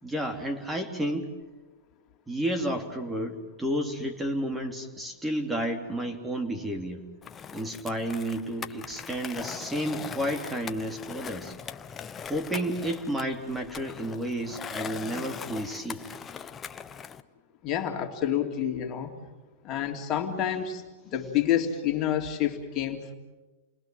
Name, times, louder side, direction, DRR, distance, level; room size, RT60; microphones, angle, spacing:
voice 1, 0.0-1.3 2.3-7.0 7.5-11.5 12.3-16.1, right 1 dB, 10° right, 5 dB, 2.8 m, -31 dB
Skateboard, 7.2-17.2, left 7 dB, 20° left, 0.9 m, -41 dB
voice 2, 17.6-19.2 19.6-23.1, left 10 dB, 35° left, 4 dB, 2.9 m, -28 dB
29.5 x 21.5 x 7.7 m, 1.2 s
hypercardioid pair, 130°, 0 cm